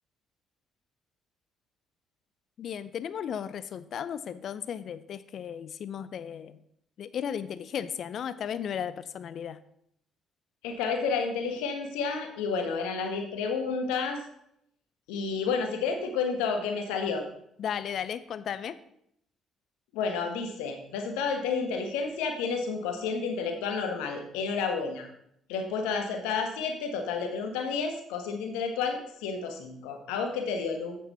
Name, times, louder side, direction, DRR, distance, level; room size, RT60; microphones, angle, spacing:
voice 1, 2.6-6.6 7.0-9.6 17.6-18.8, left 8 dB, 60° left, 14 dB, 0.6 m, -35 dB
voice 2, 10.6-14.2 15.1-17.2 19.9-25.1 25.5-31.0, left 5 dB, 80° left, 4 dB, 1.3 m, -30 dB
8.6 x 7.2 x 4.3 m, 0.73 s
hypercardioid pair, 50°, 0 cm